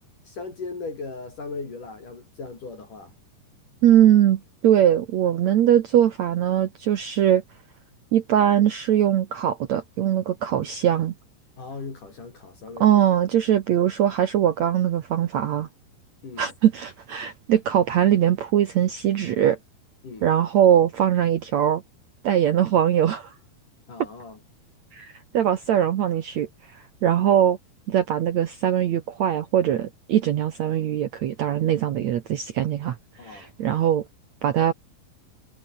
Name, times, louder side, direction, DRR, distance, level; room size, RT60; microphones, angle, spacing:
voice 1, 0.2-3.1 11.6-13.1 16.2-16.5 20.0-20.3 23.9-24.4 33.2-33.5, left 4 dB, 50° left, 6.8 m, -38 dB
voice 2, 3.8-7.4 8.1-11.1 12.8-15.7 16.4-19.6 20.2-21.8 22.2-23.3 24.9-27.6 27.9-32.9 33.2-34.0 34.4-34.7, right 10 dB, 75° right, 1.6 m, -21 dB
omnidirectional pair, 4.9 m